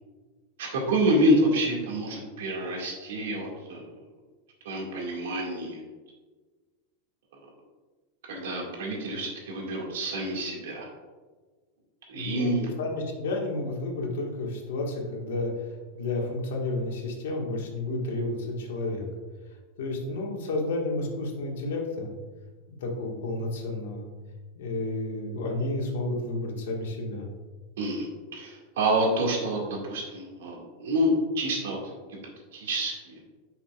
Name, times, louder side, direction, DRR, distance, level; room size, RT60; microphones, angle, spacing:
voice 1, 0.6-3.8 4.7-5.8 8.3-10.9 12.1-12.7 27.8-31.8 32.1-32.2 32.5-33.2, right 1 dB, 85° right, -1 dB, 2.0 m, -27 dB
voice 2, 12.1-15.5 15.9-19.1 19.8-22.1 22.7-24.1 24.5-27.3, left 2 dB, 75° left, 0 dB, 1.7 m, -31 dB
8.6 x 5.8 x 2.4 m, 1.3 s
supercardioid pair, 180°, 0 cm